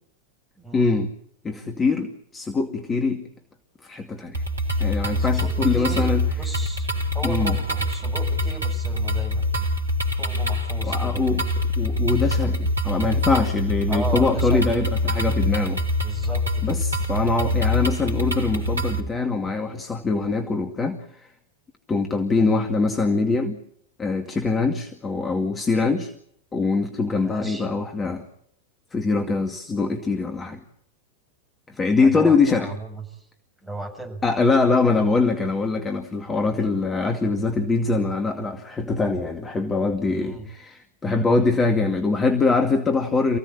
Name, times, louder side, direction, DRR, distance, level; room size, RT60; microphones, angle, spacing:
voice 1, 0.7-1.1 1.4-3.2 3.8-4.4 4.8-6.3 7.2-7.6 10.8-11.5 11.8-15.8 16.6-21.0 21.9-23.6 24.0-26.1 26.5-28.2 28.9-30.6 31.7-32.7 34.2-43.4, left 3 dB, 15° left, 5 dB, 2.2 m, -23 dB
sound 1, 4.3-19.0, left 1 dB, 75° right, 3.6 m, -24 dB
voice 2, 5.2-6.9 7.1-9.5 10.2-11.2 12.2-12.3 13.9-14.7 16.0-16.8 22.3-22.5 27.2-27.7 32.0-33.3 33.6-34.2 36.6-36.7 40.2-40.5, right 1 dB, ahead, 2 dB, 7.2 m, -36 dB
28.5 x 16.5 x 8.7 m, 0.71 s
figure-of-eight pair, 90°, 0 cm